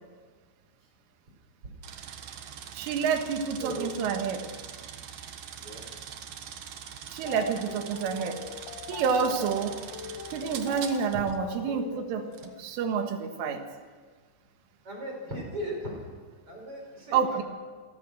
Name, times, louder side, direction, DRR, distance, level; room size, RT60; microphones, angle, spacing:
sound 1, 1.8-11.4 12.3-12.5, right 8 dB, 65° right, 2.4 m, -43 dB
voice 1, 2.8-4.5 7.1-8.4 8.9-9.8 10.3-12.3 12.6-13.6 17.1-17.4, right 6 dB, 85° right, 5 dB, 4.3 m, -28 dB
voice 2, 3.6-3.9 5.6-5.8 11.1-11.2 14.8-16.0 16.5-17.2, equal, 30° right, 0 dB, 6.0 m, -37 dB
sound 2, 7.2-12.6, left 10 dB, 80° left, 2.3 m, -41 dB
28.0 x 17.5 x 6.4 m, 1.5 s
omnidirectional pair, 5.6 m